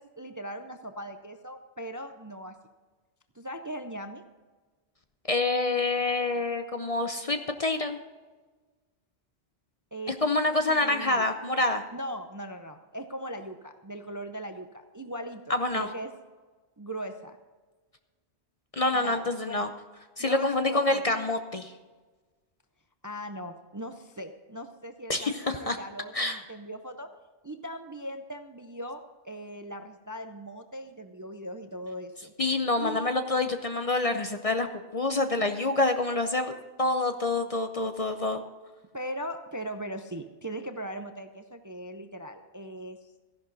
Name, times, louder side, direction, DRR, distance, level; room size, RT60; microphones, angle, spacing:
voice 1, 0.0-2.5 3.3-4.2 9.9-10.1 10.7-11.2 11.9-16.1 16.8-17.4 18.9-19.7 20.2-21.0 23.0-27.1 27.4-32.3 32.8-33.1 38.9-43.1, equal, 25° right, 7 dB, 0.5 m, -39 dB
voice 2, 5.3-8.0 10.2-11.8 15.5-15.9 18.7-19.7 20.2-21.7 25.1-25.8 26.1-26.4 32.4-34.7 34.9-36.5 36.8-38.4, left 2 dB, 40° left, 7 dB, 0.6 m, -27 dB
14.5 x 11.0 x 4.0 m, 1.3 s
omnidirectional pair, 1.1 m